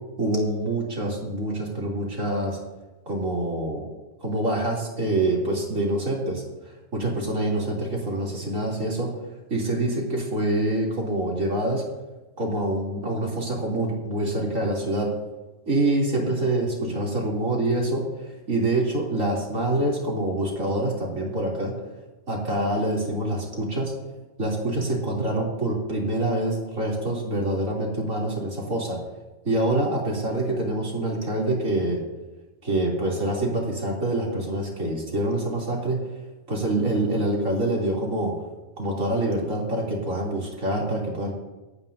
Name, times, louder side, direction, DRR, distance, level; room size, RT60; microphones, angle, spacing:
voice 1, 0.2-2.6 3.1-3.8 4.2-9.1 9.5-11.8 12.4-15.1 15.7-21.7 22.3-23.9 24.4-29.0 29.5-32.0 32.6-36.0 36.5-38.3 38.8-41.3, right 1 dB, 85° right, -3 dB, 3.6 m, -26 dB
27.0 x 9.3 x 2.8 m, 1.1 s
omnidirectional pair, 1.3 m